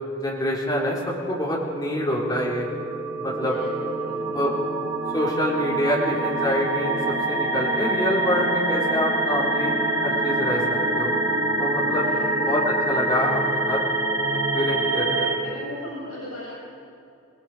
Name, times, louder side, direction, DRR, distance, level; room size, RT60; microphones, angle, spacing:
voice 1, 0.2-2.7 3.2-3.5 4.3-4.5 5.1-7.0 7.3-9.7 10.0-11.1 11.6-12.1 12.5-13.4 13.7-13.8 14.5-15.1, left 1 dB, 20° left, -5 dB, 3.9 m, -25 dB
sound 1, 2.1-15.3, right 2 dB, 60° right, 3.0 m, -25 dB
voice 2, 3.4-4.3 11.9-12.6 15.1-16.5, left 1 dB, 85° left, -6 dB, 7.2 m, -37 dB
26.5 x 20.0 x 5.1 m, 2.6 s
head